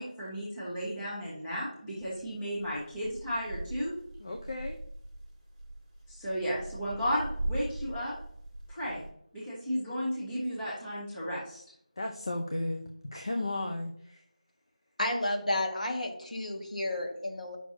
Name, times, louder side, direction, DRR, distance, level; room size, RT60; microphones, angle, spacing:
voice 1, 0.0-3.9 6.1-8.1 8.7-9.1 9.3-11.6, equal, 5° left, -9 dB, 0.8 m, -34 dB
sound 1, 2.0-9.1, right 1 dB, 15° right, 1.2 m, -41 dB
voice 2, 4.2-4.8 12.0-12.8 13.1-14.2, left 2 dB, 35° left, 3 dB, 0.6 m, -34 dB
voice 3, 15.0-17.6, left 1 dB, 65° left, 2 dB, 1.8 m, -31 dB
10.0 x 6.0 x 2.7 m, 0.68 s
figure-of-eight pair, 175°, 4 cm